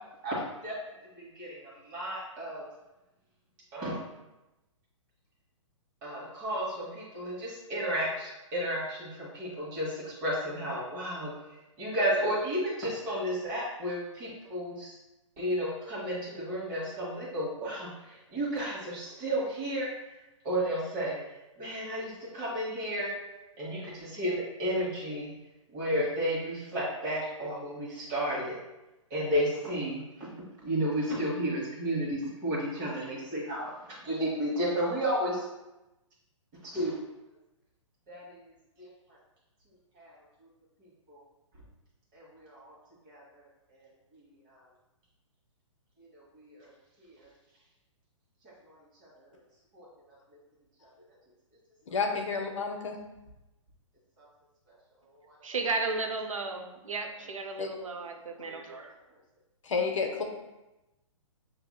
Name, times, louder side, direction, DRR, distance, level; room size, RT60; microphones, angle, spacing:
voice 1, 0.2-0.7 1.2-2.7 3.7-4.0 6.0-11.3 11.8-14.9 15.4-19.9 20.4-21.2 21.6-23.1 23.6-24.3 24.6-25.3 25.7-28.5 29.1-30.3 30.6-35.5 36.6-37.0 38.1-38.4 38.8-38.9 39.9-40.1 41.1-41.2 42.1-42.7 43.0-43.4 43.7-43.9 44.1-44.2 44.5-44.6 46.1-46.7 47.0-47.3 48.7-48.8 49.0-49.3 49.7-50.2 54.2-54.3 55.2-55.4, equal, 35° right, -7 dB, 1.3 m, -33 dB
voice 2, 51.9-53.0 57.6-57.7 59.6-60.2, left 4 dB, 70° left, 3 dB, 0.7 m, -30 dB
voice 3, 55.4-58.9, right 3 dB, 80° right, 5 dB, 0.6 m, -34 dB
5.7 x 2.7 x 2.2 m, 0.98 s
figure-of-eight pair, 125°, 17 cm